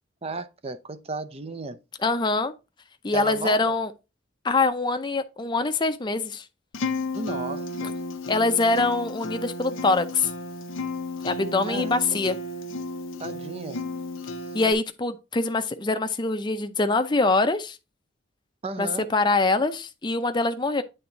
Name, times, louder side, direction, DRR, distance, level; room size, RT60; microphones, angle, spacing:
voice 1, 0.2-1.8 3.1-3.7 7.1-8.0 11.7-11.9 13.2-13.8 14.4-14.5 18.6-19.1, right 3 dB, 30° right, 0.5 m, -34 dB
voice 2, 2.0-2.5 3.0-3.9 4.4-6.4 8.3-10.3 11.2-12.4 14.5-17.8 18.8-20.8, left 3 dB, 20° left, 0.5 m, -24 dB
Acoustic guitar, 6.7-14.7, left 2 dB, 80° left, 0.7 m, -33 dB
8.6 x 3.5 x 3.9 m
head